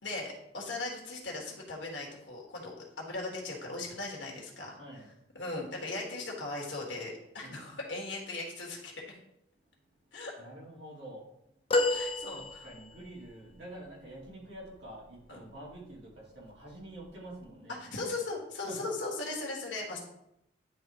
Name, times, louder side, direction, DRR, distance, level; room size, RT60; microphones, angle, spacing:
voice 1, 0.0-4.8 5.3-9.0 10.1-10.3 11.9-12.7 15.3-15.4 17.8-20.0, left 2 dB, 70° left, -1 dB, 1.6 m, -38 dB
voice 2, 4.7-5.1 7.4-7.6 10.4-11.3 12.3-18.1 18.6-18.9, right 1 dB, 70° right, -4 dB, 2.3 m, -47 dB
sound 1, 11.7-13.1 15.5-15.7 17.0-17.1, left 2 dB, 30° left, 0.4 m, -30 dB
9.8 x 3.5 x 2.9 m, 0.80 s
head